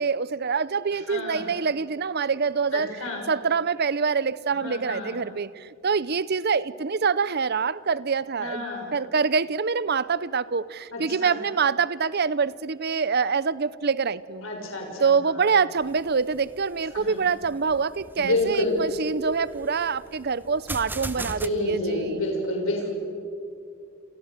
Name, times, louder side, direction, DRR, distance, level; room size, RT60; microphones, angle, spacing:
voice 1, 0.0-3.0 3.3-8.6 8.9-14.5 15.0-22.2, right 5 dB, 50° right, 18 dB, 0.7 m, -25 dB
voice 2, 1.1-1.5 2.7-3.2 4.5-5.1 8.4-8.9 10.9-11.4 14.4-15.0 17.1-17.2 18.2-18.8 21.4-22.9, left 1 dB, 80° left, 1 dB, 6.5 m, -28 dB
sound 1, 15.8-21.5, right 2 dB, 10° right, 1.0 m, -40 dB
29.0 x 28.5 x 6.8 m, 2.3 s
head